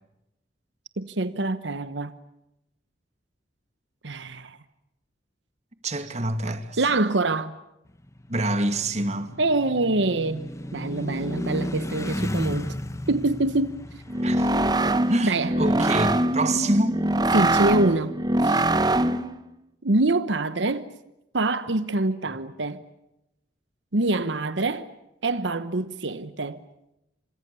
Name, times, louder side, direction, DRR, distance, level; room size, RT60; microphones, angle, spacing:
voice 1, 1.0-2.1 4.0-4.6 6.8-7.6 9.4-12.7 13.1-13.8 15.2-15.5 17.3-18.6 19.8-20.9 21.3-22.8 23.9-24.9 25.2-26.6, right 2 dB, 80° right, 1.1 m, -25 dB
voice 2, 5.8-6.8 8.3-9.3 14.2-14.5 15.1-16.9, right 1 dB, 40° right, 2.3 m, -26 dB
sound 1, 7.9-15.3, left 1 dB, 15° left, 1.2 m, -34 dB
sound 2, 14.1-19.4, right 1 dB, 20° right, 1.0 m, -23 dB
30.0 x 26.5 x 7.0 m
head